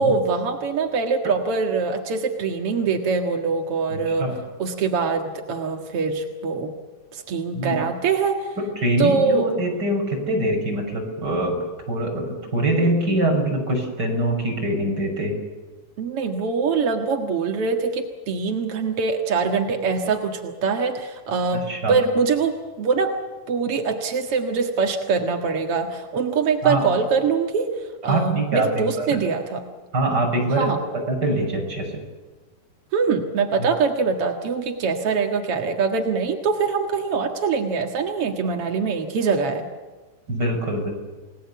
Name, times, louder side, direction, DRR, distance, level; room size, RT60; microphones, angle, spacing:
voice 1, 0.0-4.3 4.6-6.7 7.1-8.6 9.0-9.5 16.0-23.1 23.5-29.6 30.5-30.8 32.9-39.7, right 5 dB, 60° right, 3 dB, 1.5 m, -23 dB
voice 2, 3.9-4.4 7.5-7.8 8.8-11.6 11.9-15.3 21.7-21.9 26.6-26.9 28.1-29.1 29.9-30.7 30.9-31.9 33.6-33.7 40.3-40.9, right 1 dB, 20° right, 1 dB, 6.5 m, -23 dB
29.5 x 19.5 x 8.4 m, 1.3 s
omnidirectional pair, 5.3 m